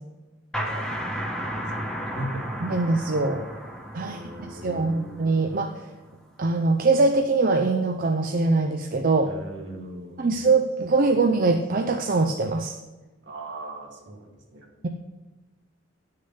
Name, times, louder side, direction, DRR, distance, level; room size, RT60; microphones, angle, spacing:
sound 1, 0.5-6.0, equal, 5° left, 1.2 m, -34 dB
voice 1, 0.6-0.9 1.4-2.8 4.0-5.1 9.2-10.3 11.0-11.1 13.2-14.7, right 1 dB, 65° right, 0 dB, 2.0 m, -39 dB
voice 2, 2.6-3.4 3.9-5.9 6.4-9.3 10.2-12.7, right 3 dB, 45° right, 5 dB, 0.5 m, -23 dB
9.6 x 6.6 x 5.4 m, 1.2 s
head